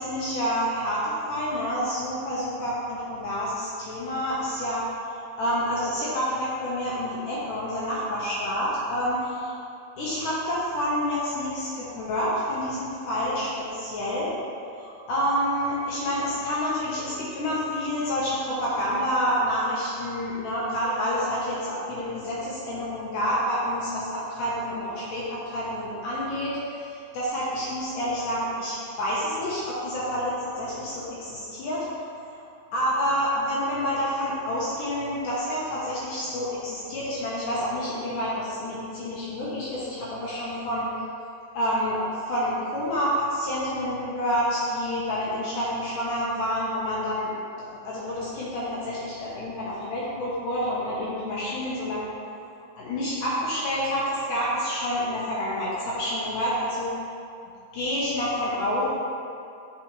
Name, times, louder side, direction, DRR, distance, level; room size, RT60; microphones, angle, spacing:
voice 1, 0.0-4.9 5.4-9.5 10.0-14.3 14.8-32.0 32.7-40.9 41.5-47.3 47.7-52.1 52.8-56.9 57.7-58.8, equal, 70° left, -7 dB, 2.1 m, -28 dB
8.5 x 5.7 x 3.1 m, 2.5 s
omnidirectional pair, 4.7 m